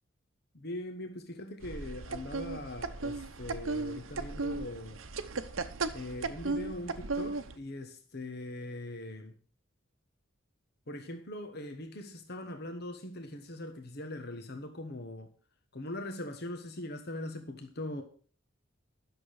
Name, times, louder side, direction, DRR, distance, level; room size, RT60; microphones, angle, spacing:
voice 1, 0.5-5.0 5.9-9.3 10.9-15.3 15.7-18.0, left 1 dB, 55° left, 1.2 m, -41 dB
sound 1, 1.6-7.6, right 3 dB, 85° right, 0.9 m, -36 dB
11.0 x 6.9 x 6.4 m
head